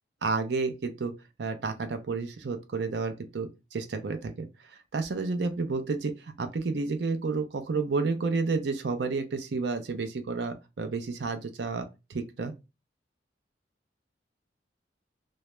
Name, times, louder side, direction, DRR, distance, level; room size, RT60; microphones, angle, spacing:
voice 1, 0.2-1.1 1.4-4.5 4.9-6.1 6.4-12.5, right 4 dB, 65° right, 0.5 m, -30 dB
2.2 x 2.0 x 2.9 m
head